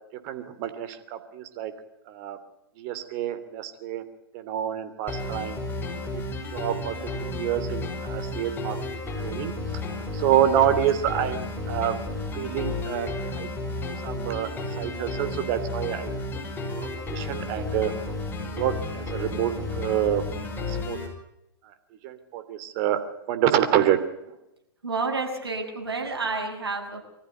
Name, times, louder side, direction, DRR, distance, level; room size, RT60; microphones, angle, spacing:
voice 1, 0.2-1.7 2.1-2.4 2.8-4.0 4.3-5.6 6.1-6.2 6.5-6.9 7.2-9.5 10.1-11.9 12.3-13.1 13.3-13.5 13.8-16.4 16.8-17.9 18.5-20.2 20.6-21.0 22.0-23.0 23.3-24.0, right 11 dB, 45° right, 10 dB, 3.1 m, -27 dB
sound 1, 5.1-21.1, left 2 dB, 15° left, 6.0 m, -32 dB
voice 2, 24.8-27.0, right 3 dB, 85° right, 2 dB, 6.9 m, -29 dB
24.5 x 15.0 x 9.4 m, 0.87 s
hypercardioid pair, 105°, 13 cm